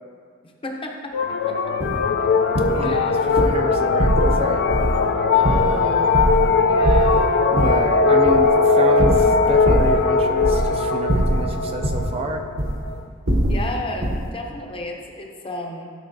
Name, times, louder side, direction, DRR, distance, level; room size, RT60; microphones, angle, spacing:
voice 1, 0.4-1.7 2.8-3.2 5.3-7.3 13.5-15.9, left 2 dB, 25° left, 1 dB, 0.7 m, -33 dB
sound 1, 1.1-13.0, left 4 dB, 55° left, 0.4 m, -19 dB
sound 2, 1.8-2.0 2.5-2.9 3.3-3.6 4.0-4.4 4.7-5.0 5.4-6.5 6.8-7.8 8.2-8.5 9.0-10.0 10.4-10.8 11.1-12.1 12.6-12.9 13.3-13.7 14.0-14.3, right 1 dB, 65° right, 1.0 m, -22 dB
voice 2, 2.7-4.6 7.5-12.4, right 2 dB, 25° right, 5 dB, 0.3 m, -29 dB
12.0 x 5.3 x 2.7 m, 2.1 s
head